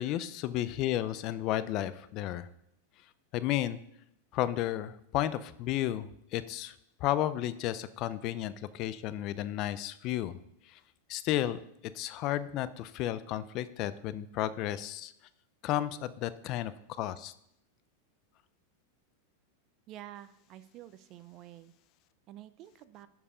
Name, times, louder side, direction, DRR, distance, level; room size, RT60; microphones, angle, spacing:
voice 1, 0.0-2.5 3.3-3.8 4.3-6.7 7.0-10.4 10.7-10.8 11.1-11.6 11.9-15.1 15.6-16.7 17.0-17.3, left 13 dB, 45° left, 15 dB, 0.5 m, -32 dB
voice 2, 19.9-21.7 22.3-23.1, right 13 dB, 45° right, 14 dB, 0.6 m, -49 dB
11.0 x 4.8 x 5.0 m, 0.77 s
hypercardioid pair, 110°, 0 cm